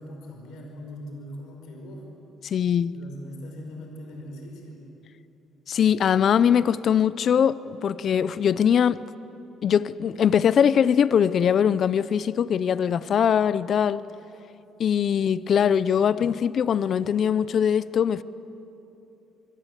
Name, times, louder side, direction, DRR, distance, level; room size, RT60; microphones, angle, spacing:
voice 1, 0.0-2.1 2.9-4.9, equal, 85° left, 5.4 m, -40 dB
voice 2, 2.4-3.0 5.7-9.0 9.6-14.0 14.8-18.2, left 8 dB, 50° left, 0.6 m, -21 dB
26.0 x 23.5 x 8.2 m
cardioid pair, 125°, 0 cm